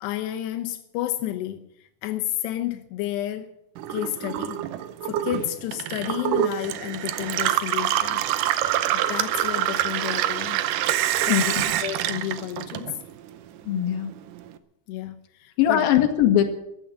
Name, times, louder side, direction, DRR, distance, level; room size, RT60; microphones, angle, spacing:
voice 1, 0.0-1.6 2.0-3.5 3.9-4.6 5.0-8.3 8.9-10.6 11.2-12.9 14.9-16.0, left 13 dB, 85° left, 3.0 m, -31 dB
Gurgling / Water tap faucet / Sink (filling or washing), 3.8-13.3 13.6-14.5, right 12 dB, 75° right, 2.0 m, -26 dB
voice 2, 13.6-14.1 15.6-16.4, left 11 dB, 65° left, 3.3 m, -20 dB
14.5 x 9.9 x 9.7 m
omnidirectional pair, 4.7 m